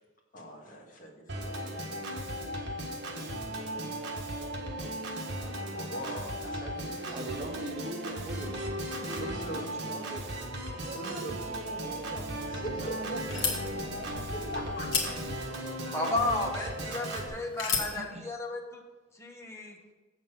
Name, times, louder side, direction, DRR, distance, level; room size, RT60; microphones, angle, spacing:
voice 1, 0.3-1.8 5.7-7.8 9.0-9.6 10.9-11.4 12.5-13.2 14.3-15.1, right 1 dB, 40° left, -1 dB, 1.8 m, -41 dB
Organ, 1.3-17.3, right 1 dB, 55° right, 1.6 m, -36 dB
voice 2, 7.1-10.3 10.9-12.3 12.8-14.2 16.1-16.2 17.8-18.3, right 2 dB, 35° right, 6 dB, 0.6 m, -43 dB
sound 1, 12.1-18.0, left 5 dB, 65° left, 1.7 m, -37 dB
voice 3, 15.9-18.8 19.1-19.8, left 2 dB, 15° left, 0 dB, 1.2 m, -33 dB
7.9 x 7.0 x 5.6 m, 1.2 s
head